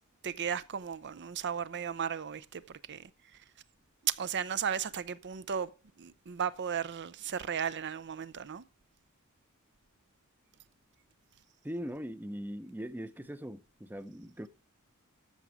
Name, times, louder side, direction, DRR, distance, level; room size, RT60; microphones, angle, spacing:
voice 1, 0.2-3.4 4.0-5.7 6.0-8.6, right 8 dB, 50° right, 0.6 m, -35 dB
voice 2, 11.6-14.5, equal, 10° right, 0.6 m, -40 dB
13.5 x 6.2 x 4.9 m
head